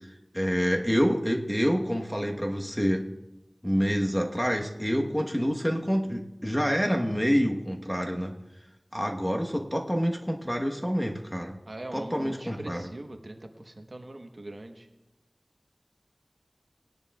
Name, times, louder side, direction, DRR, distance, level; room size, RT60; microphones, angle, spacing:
voice 1, 0.3-3.1 3.6-8.4 8.9-11.6 11.9-12.9, equal, 5° left, 1 dB, 1.1 m, -27 dB
voice 2, 11.7-14.9, right 1 dB, 55° right, 4 dB, 1.1 m, -41 dB
20.0 x 10.5 x 2.4 m, 0.96 s
wide cardioid pair, 50°, 0 cm